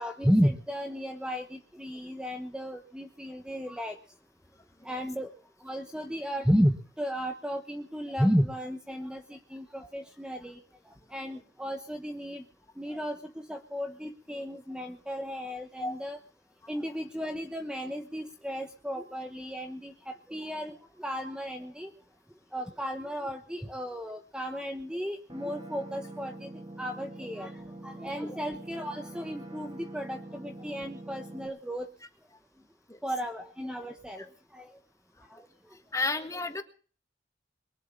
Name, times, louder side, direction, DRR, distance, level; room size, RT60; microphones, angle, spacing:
voice 1, 0.0-4.0 4.8-5.3 5.6-10.6 11.1-12.4 12.8-16.2 16.7-20.7 21.0-21.9 22.5-26.5 26.8-27.5 27.8-31.9 33.0-34.2 34.5-34.7, equal, 5° right, 6 dB, 1.1 m, -33 dB
sound 1, 25.3-31.5, right 1 dB, 25° right, 2.5 m, -44 dB
voice 2, 35.9-36.6, left 3 dB, 20° left, 7 dB, 1.8 m, -31 dB
23.0 x 8.0 x 7.0 m, 0.41 s
head